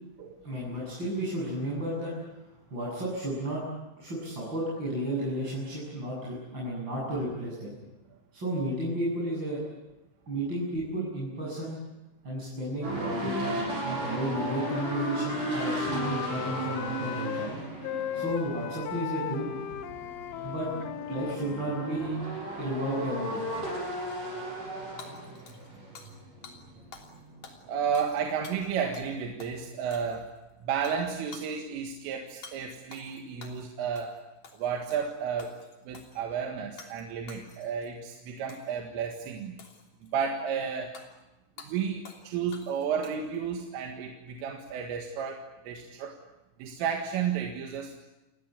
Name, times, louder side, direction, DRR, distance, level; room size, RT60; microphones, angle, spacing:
voice 1, 0.4-2.1 2.7-3.6 4.0-7.8 8.3-9.6 10.3-11.8 12.2-17.5 18.1-19.5 20.4-20.7 21.1-22.2 22.6-23.4, right 1 dB, 20° right, -7 dB, 8.3 m, -33 dB
sound 1, 12.8-26.9 27.1-27.4, right 1 dB, 40° right, 8.6 m, -35 dB
Wind instrument woodwind instrument, 13.9-17.5 17.8-22.1, left 11 dB, 75° left, 3.1 m, -37 dB
Hammer / Shatter, 25.0-26.2 26.4-26.6 26.9-27.2 27.4-29.1 29.4-29.5 29.9-30.4 30.8-31.0 31.3-31.5 32.4-32.6 32.9-33.6 34.0-34.2 34.4-35.1 35.4-36.2 36.8-37.0 37.3-37.9 38.5-38.8 39.6-40.1 40.9-41.1 41.6-41.7 42.0-42.3 42.5-43.4, left 5 dB, 40° left, 3.9 m, -49 dB
voice 2, 27.7-30.3 30.6-34.2 34.5-35.6 35.9-39.6 40.0-41.0 41.6-46.2 46.6-48.0, right 7 dB, 75° right, 2 dB, 4.2 m, -32 dB
29.0 x 20.5 x 8.5 m, 1.0 s
omnidirectional pair, 5.9 m